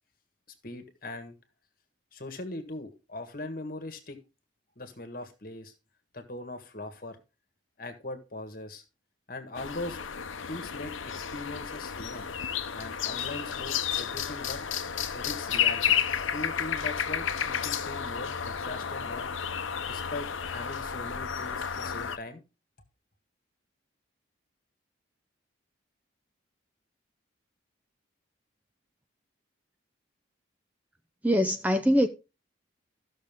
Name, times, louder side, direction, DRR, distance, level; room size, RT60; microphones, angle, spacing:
voice 1, 0.6-1.3 2.1-4.2 4.8-5.7 6.1-7.2 7.8-8.8 9.3-10.0 10.5-12.3 12.7-14.6 15.1-16.0 16.2-19.3 19.9-22.4, left 2 dB, 45° left, 1.7 m, -40 dB
sound 1, 9.5-22.2, left 8 dB, 80° left, 0.8 m, -32 dB
voice 2, 31.2-32.1, equal, 10° right, 0.6 m, -23 dB
14.5 x 6.4 x 3.6 m
head